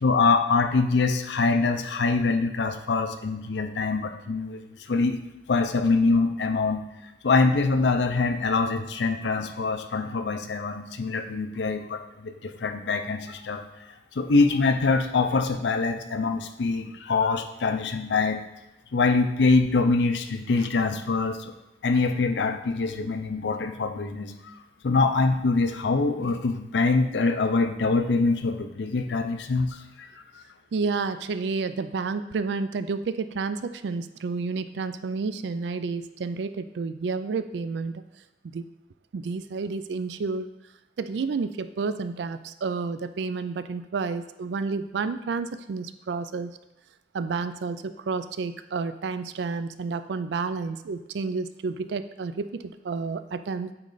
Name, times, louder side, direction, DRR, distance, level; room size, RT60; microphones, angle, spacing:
voice 1, 0.0-5.2 5.5-6.8 7.2-13.7 14.1-18.4 18.9-21.5 21.8-24.5 24.8-30.1, left 3 dB, 90° left, 7 dB, 0.5 m, -24 dB
voice 2, 30.7-38.0 38.4-38.7 39.1-40.5 41.0-46.6 47.1-53.7, right 4 dB, 85° right, 11 dB, 0.4 m, -30 dB
8.5 x 3.2 x 4.0 m, 0.97 s
head